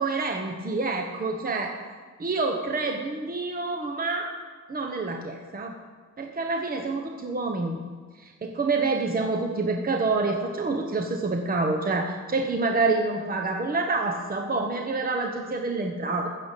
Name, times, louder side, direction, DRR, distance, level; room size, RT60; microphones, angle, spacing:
voice 1, 0.0-1.7 2.2-4.3 4.7-5.8 6.2-7.8 8.2-16.3, right 3 dB, 30° right, 3 dB, 1.0 m, -27 dB
15.0 x 7.2 x 8.2 m, 1.5 s
wide cardioid pair, 145°, 30 cm